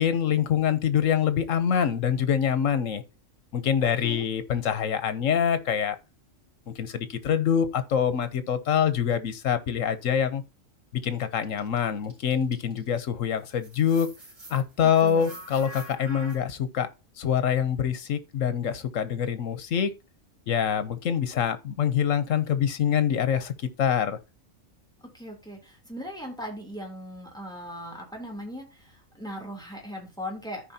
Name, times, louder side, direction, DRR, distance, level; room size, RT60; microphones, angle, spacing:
voice 1, 0.0-3.0 3.5-6.0 6.7-10.4 10.9-14.1 14.5-16.9 17.2-19.9 20.5-23.5 23.8-24.2, left 8 dB, 80° left, 1.3 m, -25 dB
sound 1, 11.4-13.1 13.4-16.4, right 1 dB, 80° right, 3.3 m, -45 dB
voice 2, 15.0-15.4 25.1-30.6, equal, 5° left, 3.0 m, -39 dB
14.0 x 4.9 x 2.8 m
omnidirectional pair, 1.3 m